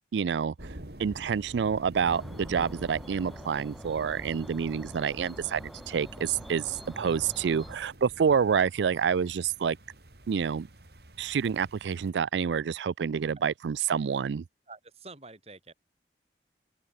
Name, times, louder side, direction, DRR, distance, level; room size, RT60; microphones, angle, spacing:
voice 1, 0.1-0.5 1.0-9.8 10.3-10.7 11.2-14.4, right 6 dB, 80° right, 0.4 m, -28 dB
sound 1, 0.6-12.1, right 1 dB, 60° right, 2.7 m, -47 dB
sound 2, 2.0-7.8, equal, ahead, 2.6 m, -46 dB
voice 2, 14.7-15.7, right 3 dB, 35° right, 4.4 m, -48 dB
open air
head